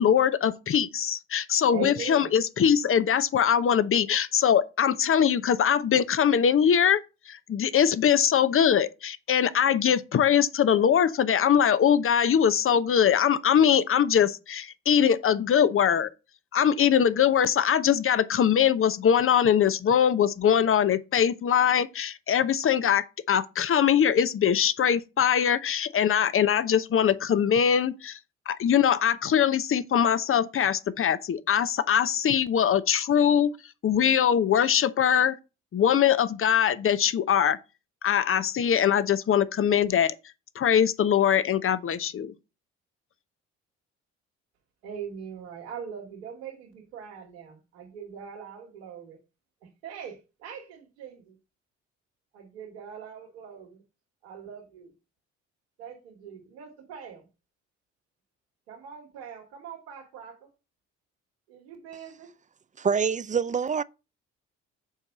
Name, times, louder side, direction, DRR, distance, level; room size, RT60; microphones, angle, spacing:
voice 1, 0.0-7.0 7.3-16.1 16.5-28.2 28.5-33.5 33.8-35.4 35.7-37.6 38.0-40.1 40.6-42.3, left 8 dB, 45° left, 0.9 m, -22 dB
voice 2, 1.7-2.3 44.8-49.2 49.6-51.4 52.3-53.8 54.2-54.9 55.8-57.2 58.7-60.5 61.5-62.3, right 7 dB, 90° right, 2.4 m, -41 dB
voice 3, 62.8-63.8, right 6 dB, 25° right, 0.5 m, -25 dB
7.1 x 4.6 x 5.5 m
hypercardioid pair, 55°, 30 cm